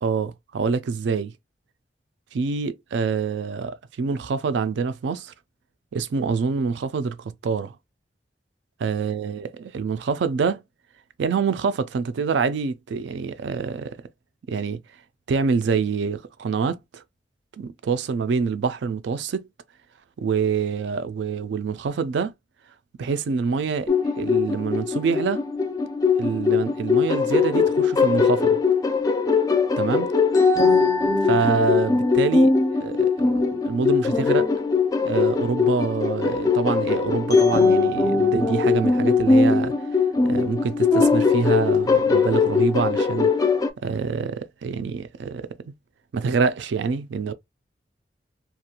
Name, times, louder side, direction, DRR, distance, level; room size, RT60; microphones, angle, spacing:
voice 1, 0.0-1.3 2.3-5.3 5.9-7.7 8.8-10.6 11.2-14.0 14.5-14.8 15.3-17.0 17.6-19.5 20.2-22.3 23.0-25.4 26.2-28.6 29.8-30.1 31.3-32.5 32.8-34.5 35.0-39.7 40.2-43.5 43.8-45.6 46.1-47.3, right 5 dB, 80° right, 0.4 m, -26 dB
sound 1, 23.9-43.7, left 4 dB, 20° left, 0.3 m, -20 dB
2.5 x 2.2 x 2.8 m
head